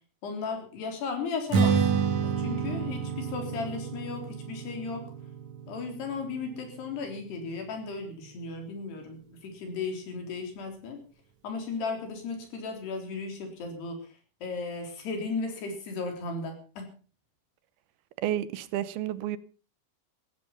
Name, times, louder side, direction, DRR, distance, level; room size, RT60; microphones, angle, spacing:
voice 1, 0.2-1.8 2.2-5.1 5.7-11.0 11.4-14.1 14.4-16.9, left 4 dB, 85° left, 5.8 m, -35 dB
Strum, 1.5-7.8, right 6 dB, 50° right, 3.3 m, -30 dB
voice 2, 18.2-19.4, right 12 dB, 80° right, 2.7 m, -30 dB
15.5 x 14.0 x 5.7 m
omnidirectional pair, 4.6 m